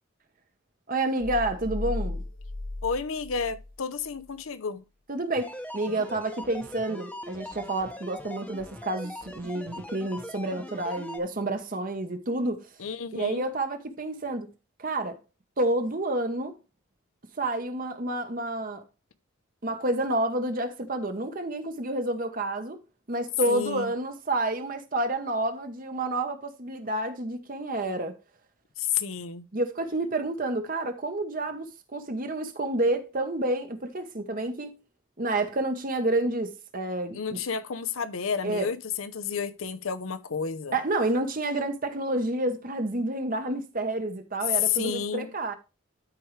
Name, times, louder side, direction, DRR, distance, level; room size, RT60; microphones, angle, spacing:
voice 1, 0.9-2.2 5.1-12.7 13.1-14.5 14.8-15.2 15.6-16.5 17.4-18.8 19.6-22.8 23.1-28.2 29.5-34.8 35.2-37.4 38.4-38.7 40.7-45.5, right 2 dB, 40° right, 1.1 m, -29 dB
sound 1, 1.2-3.8 4.1-4.2, left 2 dB, 40° left, 0.6 m, -35 dB
voice 2, 2.8-4.8 12.8-13.4 23.5-23.9 28.8-29.5 37.1-40.8 44.5-45.3, left 7 dB, 80° left, 0.7 m, -31 dB
sound 2, 5.3-11.2, left 1 dB, 5° left, 0.8 m, -40 dB
13.0 x 4.7 x 3.2 m
head